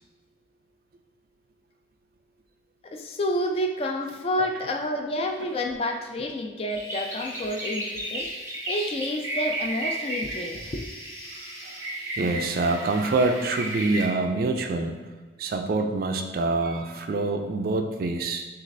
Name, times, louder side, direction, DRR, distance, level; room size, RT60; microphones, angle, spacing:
voice 1, 2.8-8.3 8.7-10.9, left 1 dB, 30° left, 4 dB, 0.3 m, -29 dB
sound 1, 6.7-14.0, right 1 dB, 15° right, 0.7 m, -34 dB
voice 2, 12.2-15.0 15.4-18.5, right 3 dB, 50° right, 6 dB, 0.3 m, -26 dB
6.1 x 2.4 x 2.6 m, 1.3 s
head